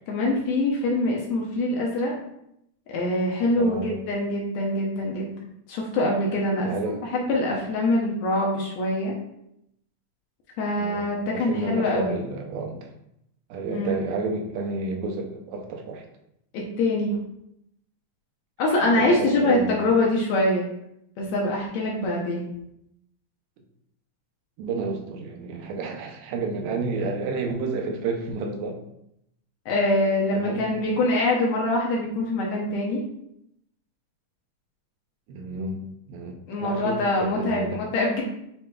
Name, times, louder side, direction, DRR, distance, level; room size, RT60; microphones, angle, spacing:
voice 1, 0.1-2.1 2.9-5.3 5.7-6.8 7.1-9.1 10.6-12.2 13.7-13.9 16.5-17.2 18.6-20.7 21.2-22.5 29.7-33.0 36.5-38.2, left 2 dB, 75° left, -2 dB, 1.8 m, -24 dB
voice 2, 3.6-4.0 6.6-7.1 10.8-12.9 13.5-16.0 18.8-20.0 24.6-28.8 30.3-30.8 35.3-37.8, right 3 dB, 90° right, 3 dB, 2.3 m, -31 dB
6.7 x 3.2 x 2.3 m, 0.79 s
omnidirectional pair, 3.7 m